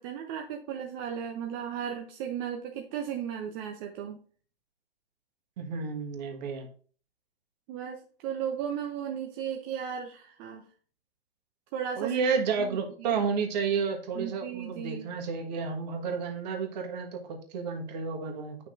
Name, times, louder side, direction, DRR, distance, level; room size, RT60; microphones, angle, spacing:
voice 1, 0.0-4.2 7.7-10.6 11.7-12.2 12.6-12.7 13.0-13.2 14.1-15.1, right 8 dB, 25° right, 3 dB, 0.6 m, -35 dB
voice 2, 5.6-6.7 12.0-18.6, right 5 dB, 45° right, 4 dB, 1.5 m, -31 dB
9.1 x 5.8 x 2.6 m, 0.42 s
hypercardioid pair, 125°, 31 cm